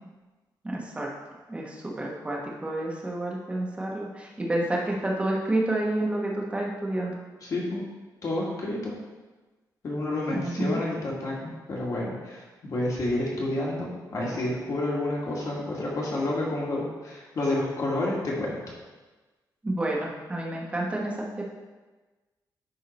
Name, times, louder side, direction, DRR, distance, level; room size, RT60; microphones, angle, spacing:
voice 1, 0.6-1.1 1.5-7.1 10.3-10.8 19.6-21.4, right 1 dB, 15° right, -3 dB, 1.2 m, -29 dB
voice 2, 7.4-7.8 8.2-8.9 9.8-18.6, left 2 dB, 50° left, -4 dB, 1.8 m, -29 dB
11.0 x 3.8 x 4.2 m, 1.2 s
wide cardioid pair, 180°, 7 cm